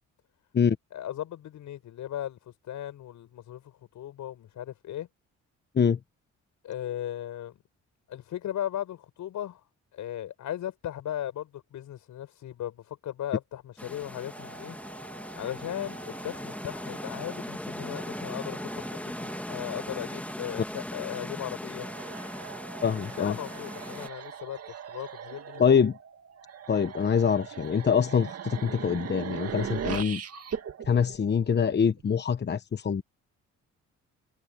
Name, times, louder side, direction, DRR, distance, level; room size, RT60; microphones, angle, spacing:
voice 1, 0.9-5.1 6.6-7.6 8.1-9.6 9.9-14.8 15.3-21.9 23.2-24.6 24.9-25.6, left 11 dB, 75° left, 7.5 m, -37 dB
sound 1, 13.8-24.1, left 1 dB, 5° left, 2.5 m, -39 dB
sound 2, 14.1-20.3, right 7 dB, 80° right, 2.7 m, -49 dB
sound 3, 21.8-32.0, right 8 dB, 55° right, 2.3 m, -39 dB
voice 2, 22.8-23.4 25.6-25.9 26.7-30.2 30.9-33.0, left 7 dB, 35° left, 1.1 m, -24 dB
cardioid pair, 90°, 30 cm